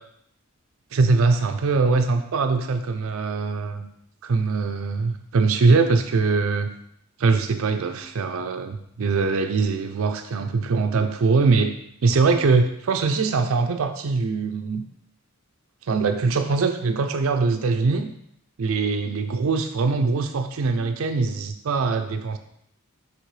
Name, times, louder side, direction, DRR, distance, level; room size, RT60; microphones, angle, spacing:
voice 1, 0.9-3.9 4.2-6.7 7.2-11.7 12.0-14.8 15.9-18.1 18.6-22.4, right 4 dB, 60° right, 6 dB, 0.4 m, -22 dB
6.4 x 5.3 x 3.2 m, 0.73 s
head